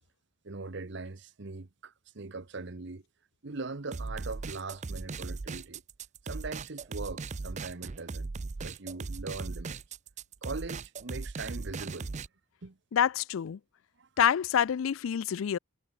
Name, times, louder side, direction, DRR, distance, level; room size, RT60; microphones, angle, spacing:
voice 1, 0.4-3.0 3.4-5.8 6.2-8.3 8.6-9.8 10.4-12.1 12.6-12.8 14.0-14.1, right 3 dB, 60° right, 1.0 m, -41 dB
sound 1, 3.9-12.3, right 4 dB, 35° right, 0.5 m, -38 dB
voice 2, 12.9-13.6 14.2-15.6, left 9 dB, 80° left, 0.4 m, -27 dB
head